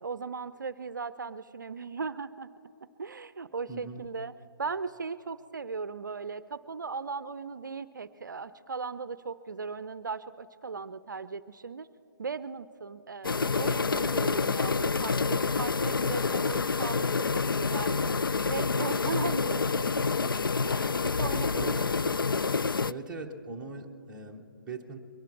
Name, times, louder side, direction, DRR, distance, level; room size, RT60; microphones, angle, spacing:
voice 1, 0.0-2.5 3.0-4.3 4.6-11.9 12.2-20.3 20.6-21.8, right 5 dB, 60° right, 15 dB, 0.5 m, -38 dB
voice 2, 3.7-4.1 21.5-22.0 22.8-25.0, right 3 dB, 5° right, -2 dB, 0.9 m, -41 dB
sound 1, 13.2-22.9, left 4 dB, 75° left, 0.4 m, -28 dB
23.0 x 12.0 x 4.4 m, 2.7 s
figure-of-eight pair, 145°, 11 cm